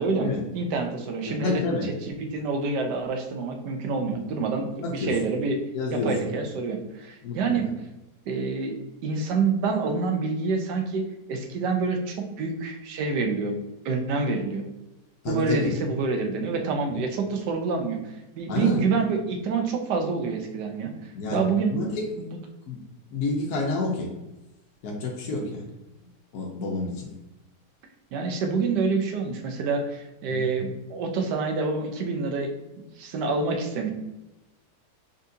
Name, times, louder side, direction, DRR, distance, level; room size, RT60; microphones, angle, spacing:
voice 1, 0.0-5.6 5.9-7.7 8.3-8.7 9.0-11.0 11.3-13.5 13.8-14.6 15.3-18.0 18.4-20.9 21.3-21.8 22.2-22.4 28.1-32.5 32.8-33.9, right 4 dB, 80° right, 4 dB, 1.3 m, -27 dB
voice 2, 1.2-1.9 4.1-4.2 4.8-5.3 5.7-6.3 7.2-7.4 15.2-15.7 18.5-18.9 21.1-21.4 21.7-22.1 22.7-22.8 23.1-24.1 24.8-25.6 26.3-27.1 30.3-30.5, left 3 dB, 70° left, -1 dB, 1.1 m, -29 dB
4.1 x 3.6 x 2.6 m, 1.0 s
omnidirectional pair, 1.8 m